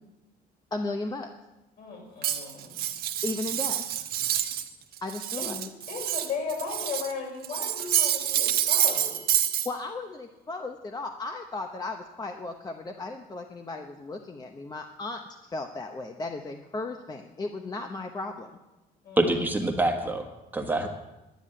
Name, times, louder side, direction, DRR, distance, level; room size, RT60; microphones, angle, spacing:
voice 1, 0.7-1.3 3.2-3.8 5.0-5.7 9.6-18.5, left 3 dB, 25° left, 5 dB, 0.9 m, -35 dB
voice 2, 1.8-2.8 5.4-5.5 5.9-9.1 19.0-19.2, left 5 dB, 65° left, -2 dB, 6.4 m, -36 dB
Cutlery silverware, 2.2-4.7 5.0-7.1 7.4-9.7, right 10 dB, 65° right, 1.1 m, -27 dB
voice 3, 19.2-20.9, right 2 dB, 10° right, 3 dB, 1.3 m, -26 dB
10.5 x 9.9 x 8.7 m, 1.0 s
cardioid pair, 110°, 17 cm